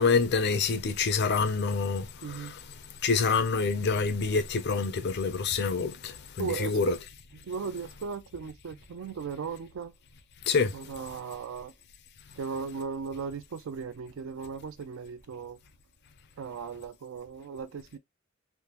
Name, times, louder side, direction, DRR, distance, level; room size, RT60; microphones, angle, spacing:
voice 1, 0.0-2.6 3.0-7.0 10.5-10.7, left 4 dB, 55° left, 0.5 m, -27 dB
voice 2, 2.2-2.5 6.4-6.7 7.5-9.9 10.7-11.7 12.4-15.6 16.4-18.0, right 5 dB, 75° right, 0.4 m, -37 dB
3.4 x 2.1 x 2.9 m
head